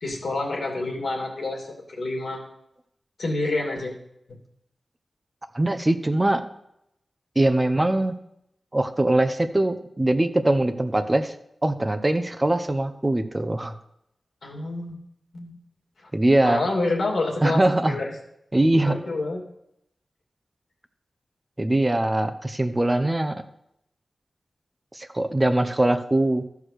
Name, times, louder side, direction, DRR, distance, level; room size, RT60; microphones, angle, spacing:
voice 1, 0.0-2.4 3.2-3.9 14.4-15.0 15.3-15.6 16.4-18.1 18.8-19.4, left 2 dB, 80° left, 0 dB, 2.5 m, -28 dB
voice 2, 5.5-6.4 7.4-8.1 8.7-11.3 11.6-13.7 16.1-16.6 17.4-18.0 18.5-19.0 21.6-23.4 24.9-26.4, right 1 dB, 25° right, 8 dB, 0.8 m, -22 dB
13.5 x 4.8 x 6.5 m, 0.79 s
wide cardioid pair, 65°, 0 cm